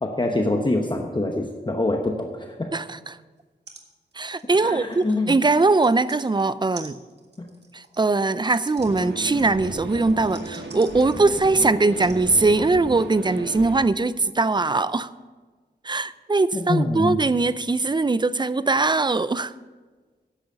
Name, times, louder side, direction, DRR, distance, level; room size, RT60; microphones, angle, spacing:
voice 1, 0.0-2.7 4.6-5.4 7.4-7.5 16.5-17.2, left 2 dB, 25° left, 3 dB, 1.0 m, -25 dB
voice 2, 2.7-3.2 4.2-7.0 7.7-15.1 15.8-19.5, right 3 dB, 25° right, 16 dB, 0.4 m, -21 dB
sound 1, 3.4-3.5 3.7-3.9 4.1-6.3 6.7-11.5 12.0-12.2 13.0-13.1, right 3 dB, 75° right, 1.8 m, -47 dB
sound 2, 8.8-13.8, right 2 dB, 90° right, 1.4 m, -34 dB
10.5 x 7.9 x 6.8 m, 1.4 s
wide cardioid pair, 75°, 18 cm